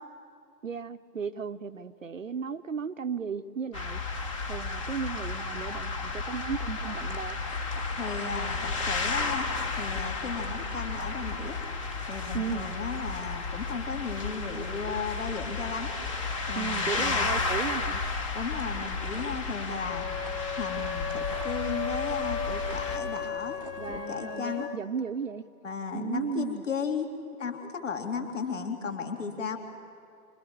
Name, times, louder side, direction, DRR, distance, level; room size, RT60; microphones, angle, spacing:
voice 1, 0.6-4.0 4.5-7.4 12.3-12.7 16.6-18.0 23.8-25.4 25.9-26.6, right 6 dB, 50° right, 10 dB, 0.8 m, -35 dB
sound 1, 3.7-23.0, left 3 dB, 20° left, 1.2 m, -33 dB
sound 2, 6.7-24.0, right 2 dB, 5° right, 0.9 m, -49 dB
voice 2, 8.0-11.6 12.1-15.9 16.5-17.3 18.3-20.0 20.6-24.7 25.6-27.1 27.3-29.6, left 5 dB, 50° left, 4 dB, 2.8 m, -35 dB
sound 3, 19.9-24.8, left 6 dB, 75° left, 0.8 m, -35 dB
28.5 x 24.5 x 6.9 m, 2.5 s
figure-of-eight pair, 135°, 49 cm